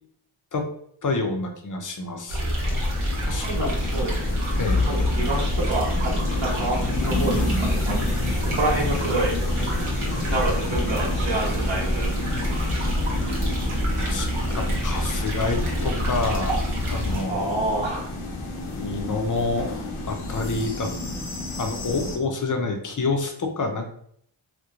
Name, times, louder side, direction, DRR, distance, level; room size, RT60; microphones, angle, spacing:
voice 1, 1.0-2.5 3.2-3.7 4.6-4.9 14.0-16.6 16.9-17.6 18.8-19.7 20.1-20.9 21.6-23.9, left 3 dB, 40° left, 4 dB, 0.5 m, -28 dB
sound 1, 2.3-17.2, equal, 85° right, 0.9 m, -27 dB
sound 2, 2.6-22.2, left 2 dB, 90° left, 0.7 m, -30 dB
voice 2, 3.4-4.3 4.9-9.4 10.3-12.1 17.3-18.0, right 2 dB, 60° right, -2 dB, 1.0 m, -28 dB
2.9 x 2.1 x 2.4 m, 0.65 s
wide cardioid pair, 65°, 49 cm